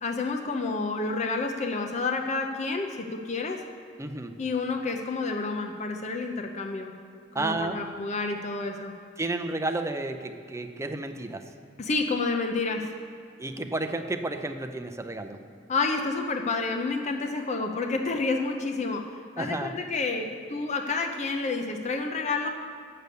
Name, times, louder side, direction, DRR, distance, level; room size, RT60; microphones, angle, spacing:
voice 1, 0.0-3.6 4.4-6.9 7.3-8.9 11.8-12.9 15.7-19.1 19.4-22.5, left 3 dB, 40° left, 4 dB, 0.6 m, -29 dB
voice 2, 4.0-4.4 7.3-7.8 9.2-11.4 13.4-15.4 19.4-19.7, right 2 dB, 15° right, 6 dB, 0.5 m, -31 dB
8.0 x 6.7 x 8.2 m, 2.4 s
head